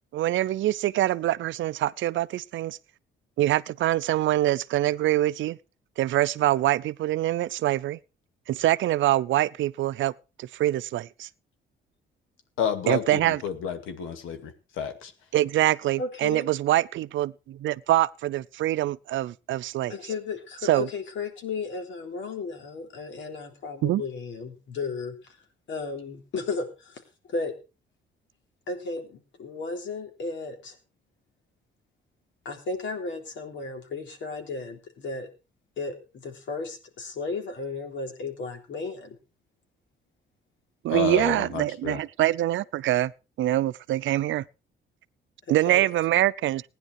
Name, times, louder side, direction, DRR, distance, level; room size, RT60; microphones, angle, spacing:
voice 1, 0.1-2.8 3.4-5.6 6.0-8.0 8.5-10.1 10.4-11.3 12.9-13.4 15.3-19.9 20.7-20.9 23.8-24.0 40.8-43.1 43.4-44.5 45.5-46.6, right 14 dB, 75° right, 0.6 m, -24 dB
voice 2, 12.6-14.5 14.8-15.1 40.9-42.0, left 7 dB, 90° left, 2.3 m, -30 dB
voice 3, 16.0-16.4 19.9-25.4 25.7-27.0 27.3-27.5 28.7-30.8 32.5-35.3 35.8-39.2 45.5-45.9, left 4 dB, 70° left, 3.6 m, -34 dB
16.5 x 10.0 x 4.7 m
cardioid pair, 90°, 20 cm